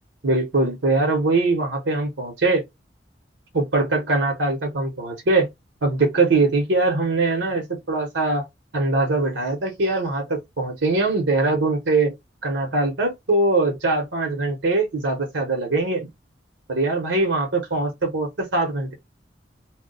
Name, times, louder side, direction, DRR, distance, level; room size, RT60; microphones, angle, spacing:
voice 1, 0.2-2.6 3.5-5.5 5.8-8.5 8.7-12.1 12.4-16.1 16.7-18.9, right 2 dB, 90° right, 1.0 m, -22 dB
2.3 x 2.2 x 3.9 m
head